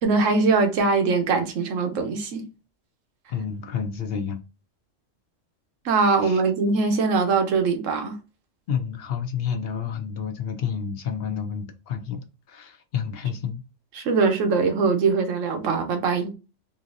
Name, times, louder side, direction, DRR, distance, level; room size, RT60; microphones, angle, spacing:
voice 1, 0.0-2.5 5.8-8.2 13.9-16.3, right 4 dB, 85° right, 1.1 m, -22 dB
voice 2, 3.3-4.4 6.2-6.4 8.7-13.6, left 7 dB, 65° left, 0.7 m, -30 dB
3.8 x 2.7 x 2.5 m
omnidirectional pair, 1.3 m